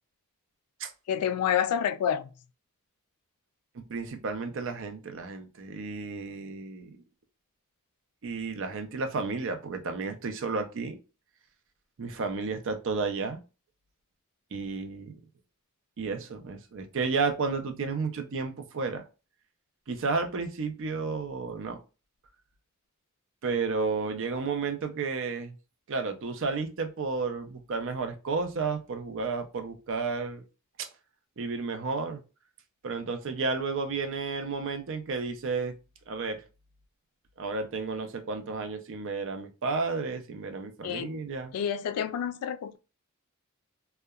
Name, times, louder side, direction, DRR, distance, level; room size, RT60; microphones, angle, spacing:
voice 1, 1.1-2.3 40.8-41.1 41.5-42.8, left 9 dB, 85° left, 0.3 m, -28 dB
voice 2, 3.7-7.0 8.2-11.0 12.0-13.4 14.5-15.2 16.0-19.0 19.9-21.8 23.4-25.5 25.9-30.4 30.8-30.9 31.4-32.2 32.8-35.7 36.1-36.4 37.4-41.5, right 4 dB, 60° right, 0.5 m, -32 dB
2.8 x 2.2 x 2.3 m
head